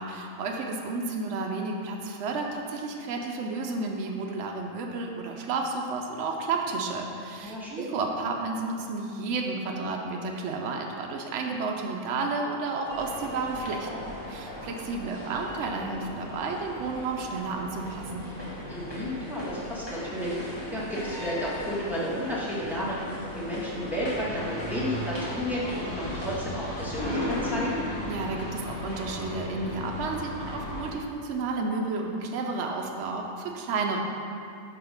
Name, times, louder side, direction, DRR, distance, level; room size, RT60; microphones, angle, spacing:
voice 1, 0.0-14.0 14.3-18.3 28.0-34.1, right 3 dB, 65° right, 1 dB, 0.9 m, -31 dB
voice 2, 7.4-7.9 18.7-27.8, equal, ahead, -8 dB, 1.3 m, -32 dB
sound 1, 12.9-30.9, left 1 dB, 20° left, 1.1 m, -36 dB
5.8 x 4.8 x 5.1 m, 2.5 s
omnidirectional pair, 1.4 m